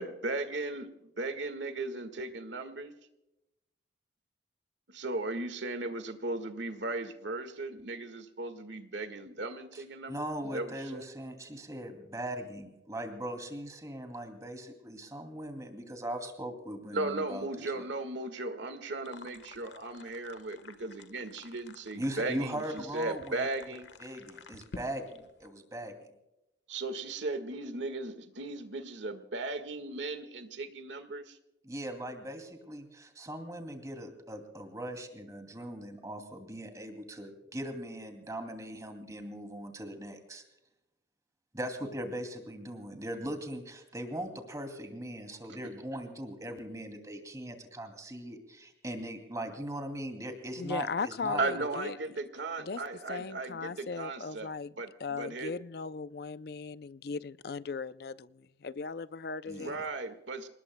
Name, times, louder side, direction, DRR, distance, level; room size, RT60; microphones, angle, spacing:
voice 1, 0.0-0.9 1.2-2.9 4.9-11.0 16.9-23.9 26.7-31.4 51.4-54.5 54.8-55.5 59.6-60.5, right 2 dB, 85° right, 9 dB, 1.7 m, -37 dB
voice 2, 9.7-17.8 22.0-25.9 31.6-40.4 41.5-51.7 59.5-59.8, right 1 dB, 20° right, 6 dB, 2.6 m, -40 dB
sound 1, 19.0-25.5, left 3 dB, 80° left, 1.3 m, -51 dB
voice 3, 50.6-52.0 52.6-52.8 53.1-54.7 55.0-59.8, left 5 dB, 60° left, 15 dB, 0.4 m, -38 dB
28.0 x 19.5 x 2.2 m, 0.94 s
head